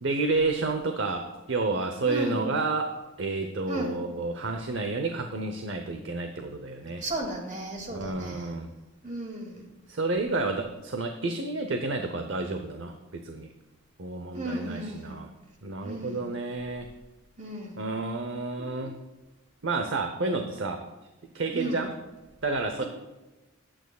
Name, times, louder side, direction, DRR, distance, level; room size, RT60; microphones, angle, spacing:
voice 1, 0.0-2.9 3.2-7.0 7.9-8.7 9.9-13.5 14.0-15.3 15.6-16.9 17.8-19.0 19.6-20.8 21.3-21.9 22.4-22.8, right 3 dB, 60° right, 5 dB, 0.8 m, -30 dB
voice 2, 2.0-2.5 3.7-4.1 6.8-8.5 9.0-9.6 14.3-15.2 15.6-16.3 17.4-17.8 21.5-21.9 22.8-22.9, right 1 dB, 35° right, 1 dB, 2.3 m, -35 dB
20.5 x 8.9 x 2.4 m, 1.1 s
head